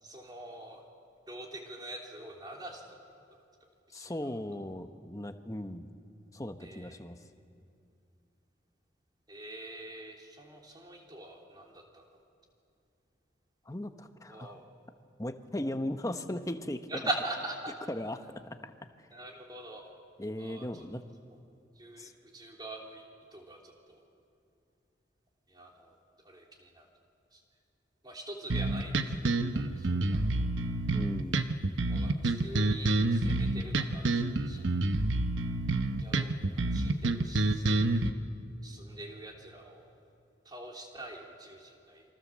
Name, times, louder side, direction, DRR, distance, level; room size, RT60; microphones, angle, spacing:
voice 1, 0.0-0.8 1.3-2.8 3.9-4.4 6.6-7.0 9.3-12.2 14.3-14.6 16.9-17.7 19.1-19.8 20.4-20.8 21.8-23.0 23.3-24.0 25.5-26.0 26.3-26.9 27.3-27.4 28.0-29.2 29.5-30.4 31.9-34.8 36.0-38.0 38.6-39.9 40.5-42.0, right 2 dB, 20° right, 0 dB, 3.4 m, -43 dB
voice 2, 3.9-5.9 6.3-7.2 13.7-14.5 15.2-16.8 17.9-18.2 18.6-18.7 20.2-21.0 22.0-22.1 30.9-31.4, left 1 dB, 20° left, 8 dB, 1.1 m, -37 dB
sound 1, 28.5-38.1, right 2 dB, 90° right, 1.0 m, -28 dB
27.5 x 23.5 x 7.5 m, 2.6 s
head